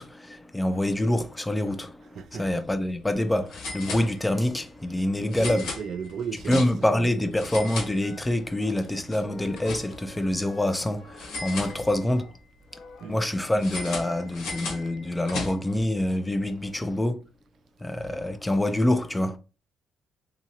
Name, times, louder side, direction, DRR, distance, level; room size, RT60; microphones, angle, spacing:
voice 1, 0.0-5.7 6.5-12.3 13.1-17.2 17.8-19.4, left 1 dB, 10° left, 0.6 m, -26 dB
voice 2, 2.1-2.5 5.3-6.6 13.0-13.2, right 6 dB, 65° right, 0.4 m, -35 dB
sound 1, 2.3-2.5 2.8-2.9 3.5-4.5 5.3-7.0 7.3-8.5 8.8-10.2 11.2-12.3 13.6-15.8, left 3 dB, 90° left, 1.6 m, -36 dB
sound 2, 8.0-12.3 12.6-13.2, left 3 dB, 70° left, 0.8 m, -49 dB
3.6 x 2.9 x 2.9 m
cardioid pair, 90°, 0 cm